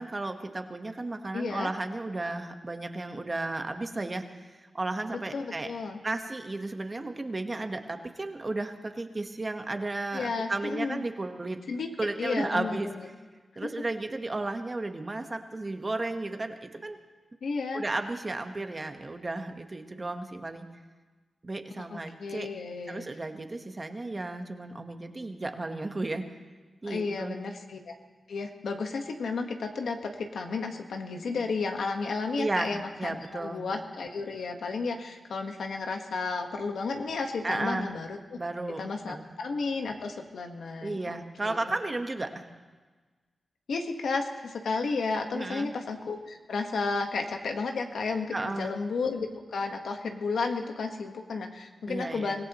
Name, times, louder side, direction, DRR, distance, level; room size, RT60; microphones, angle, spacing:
voice 1, 0.0-5.7 6.0-11.6 12.0-12.9 13.5-17.0 17.7-20.7 21.4-22.5 22.9-26.4 26.8-27.3 32.4-32.7 33.0-33.6 37.4-37.9 38.4-39.3 40.8-42.5 45.3-45.7 48.3-48.7 51.9-52.4, right 2 dB, 35° right, 6 dB, 1.3 m, -34 dB
voice 2, 1.3-1.7 5.3-6.0 10.1-11.0 11.7-11.9 12.2-13.1 17.4-17.8 22.2-23.1 26.8-27.9 28.3-38.4 38.8-41.7 43.7-52.5, left 4 dB, 85° left, 4 dB, 1.4 m, -33 dB
24.5 x 16.5 x 3.1 m, 1.3 s
cardioid pair, 70°, 0 cm